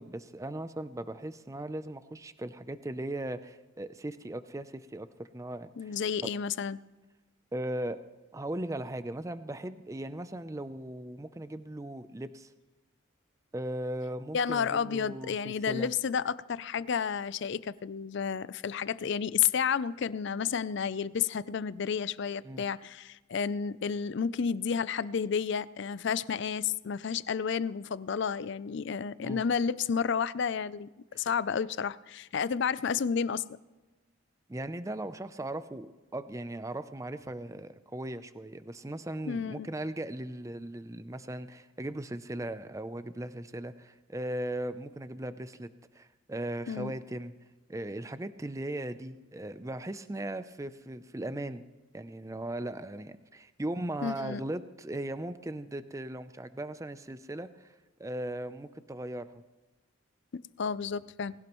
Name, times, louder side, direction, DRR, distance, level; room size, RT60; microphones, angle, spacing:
voice 1, 0.0-5.9 6.2-6.3 7.5-8.1 8.3-12.5 13.5-15.9 22.4-22.6 29.2-29.4 31.1-31.2 34.5-47.3 47.7-51.6 51.9-57.7 58.0-59.4, right 1 dB, 15° right, 0.5 m, -38 dB
voice 2, 5.8-6.8 14.3-30.9 31.1-33.6 39.3-39.7 46.7-46.9 54.0-54.4 60.3-61.3, left 6 dB, 55° left, 0.4 m, -31 dB
19.5 x 17.0 x 3.0 m
head